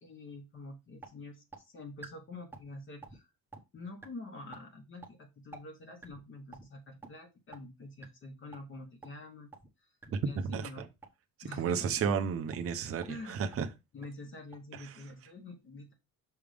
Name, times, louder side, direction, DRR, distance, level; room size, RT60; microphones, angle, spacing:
voice 1, 0.0-3.3 3.7-9.5 9.8-9.9 10.2-10.9 11.4-12.0 13.1-13.4 13.9-15.9, left 2 dB, 35° left, 1.2 m, -47 dB
sound 1, 0.5-0.6 1.0-1.1 1.5-1.6 2.0-2.1 2.5-2.7 3.0-3.2 3.5-3.6 4.0-4.1 4.5-4.6 5.0-5.1 5.5-5.6 6.0-6.2 6.5-6.6 7.0-7.1 7.5-7.6 8.0-8.1 8.5-8.6 9.0-9.1 9.5-9.7 10.0-10.1 10.5-10.6 11.0-11.1 11.5-11.6 12.0-12.1 12.5-12.7 13.0-13.2 13.5-13.6 14.0-14.1 14.5-14.6, right 3 dB, 5° right, 0.9 m, -48 dB
voice 2, 11.6-13.7, right 7 dB, 40° right, 0.8 m, -32 dB
6.3 x 3.5 x 5.0 m
cardioid pair, 180°, 35 cm